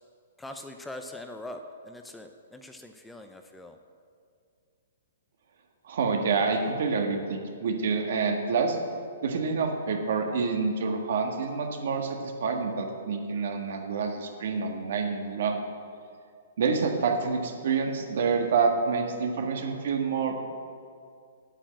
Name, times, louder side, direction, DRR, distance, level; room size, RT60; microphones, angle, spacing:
voice 1, 0.4-3.8, left 1 dB, 5° left, 5 dB, 0.6 m, -42 dB
voice 2, 5.8-8.8 9.2-15.6 16.6-20.5, right 5 dB, 65° right, 3 dB, 1.7 m, -27 dB
9.0 x 8.7 x 7.7 m, 2.3 s
hypercardioid pair, 140°, 0 cm